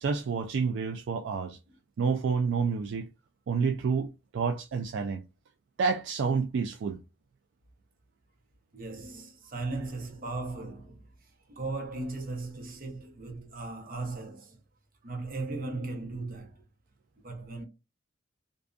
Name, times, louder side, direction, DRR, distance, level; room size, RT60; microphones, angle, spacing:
voice 1, 0.0-1.6 2.0-3.1 3.5-5.3 5.8-7.0, right 5 dB, 70° right, 0.3 m, -29 dB
voice 2, 8.7-14.6 15.0-16.6 17.2-17.7, right 3 dB, 50° right, 0.7 m, -37 dB
2.5 x 2.2 x 2.5 m
head